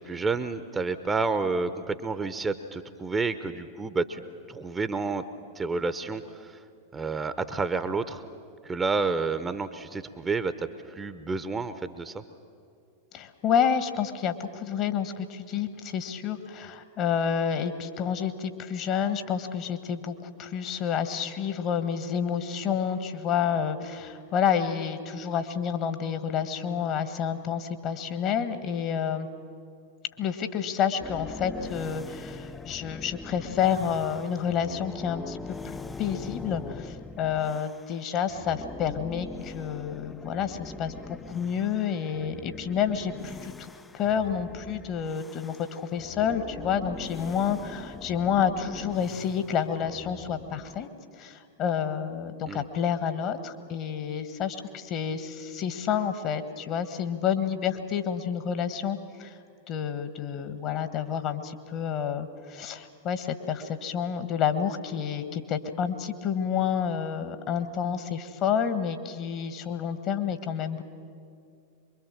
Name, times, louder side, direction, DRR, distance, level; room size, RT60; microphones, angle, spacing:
voice 1, 0.0-4.2 4.5-5.3 5.5-6.6 6.9-8.2 8.6-12.2 52.5-52.7, right 4 dB, 15° right, 11 dB, 0.9 m, -30 dB
voice 2, 13.1-29.3 30.2-35.4 36.0-40.9 41.3-43.7 43.9-50.9 51.1-59.4 59.7-70.8, left 8 dB, 35° left, 10 dB, 1.5 m, -29 dB
sound 1, 31.0-38.0 38.3-50.9, left 3 dB, 10° left, 0.5 m, -42 dB
24.5 x 23.0 x 7.4 m, 2.4 s
figure-of-eight pair, 90°, 0 cm